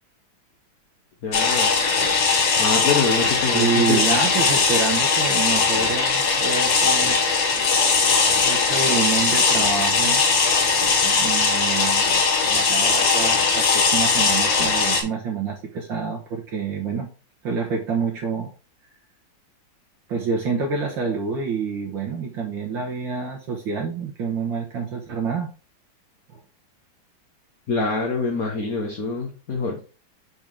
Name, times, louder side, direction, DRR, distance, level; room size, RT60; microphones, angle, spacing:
voice 1, 1.2-1.7 2.6-4.0 27.7-29.8, left 4 dB, 50° left, 0 dB, 1.6 m, -25 dB
sound 1, 1.3-15.0, left 4 dB, 70° left, 2.1 m, -20 dB
voice 2, 3.5-7.2 8.4-10.3 11.0-12.1 12.5-17.1 17.4-18.5 20.1-25.5 26.3-26.4, right 5 dB, 70° right, 0 dB, 1.9 m, -27 dB
7.5 x 4.3 x 3.5 m, 0.34 s
omnidirectional pair, 2.2 m